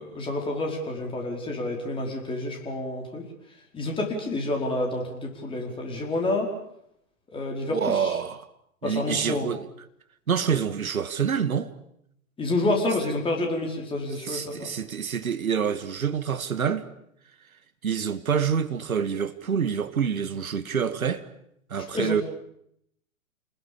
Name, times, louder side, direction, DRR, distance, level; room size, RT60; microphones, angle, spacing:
voice 1, 0.0-3.2 3.7-6.5 7.3-8.1 8.8-9.5 12.4-14.7 21.8-22.2, left 2 dB, 10° left, 4.9 m, -29 dB
voice 2, 7.7-8.5 8.8-9.7 10.3-11.7 14.2-16.9 17.8-21.3 21.7-22.2, right 7 dB, 70° right, 1.9 m, -27 dB
28.5 x 20.5 x 7.1 m
figure-of-eight pair, 120°, 43 cm